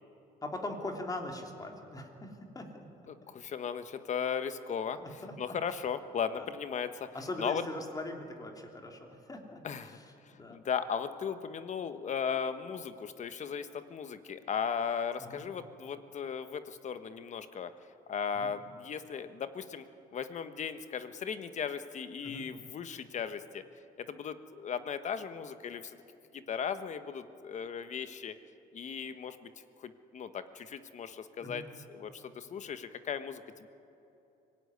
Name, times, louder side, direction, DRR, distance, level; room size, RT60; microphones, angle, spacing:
voice 1, 0.4-2.9 3.2-3.3 5.0-5.6 6.3-6.5 7.1-9.0 9.3-10.6 15.2-15.5 18.3-18.6 22.2-22.5 31.4-31.7, left 2 dB, 20° left, 3 dB, 3.0 m, -41 dB
voice 2, 3.3-5.0 5.4-7.1 7.4-7.6 9.6-10.0 10.5-17.7 18.1-19.8 20.1-23.6 24.0-26.0 26.3-28.3 28.7-29.5 29.8-33.7, left 7 dB, 45° left, 10 dB, 1.3 m, -37 dB
24.5 x 17.0 x 9.7 m, 2.9 s
cardioid pair, 110°, 17 cm